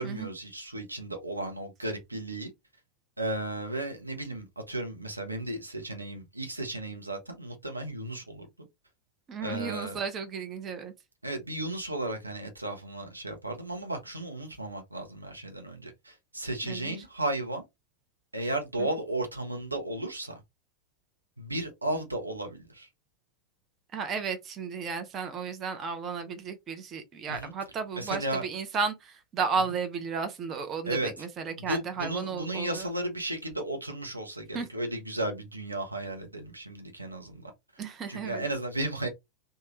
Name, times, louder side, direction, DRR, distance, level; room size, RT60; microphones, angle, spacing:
voice 1, 0.0-2.5 3.2-8.5 9.4-10.0 11.2-17.6 18.3-20.4 21.4-22.9 27.3-27.5 27.9-28.4 30.9-31.1 31.6-37.5 38.1-39.1, right 1 dB, 85° right, 0.8 m, -34 dB
voice 2, 9.3-10.9 16.6-17.0 18.8-18.9 23.9-32.9 34.5-34.7 37.8-38.4, right 5 dB, 30° right, 0.7 m, -33 dB
3.1 x 2.3 x 3.0 m
figure-of-eight pair, 90°, 0 cm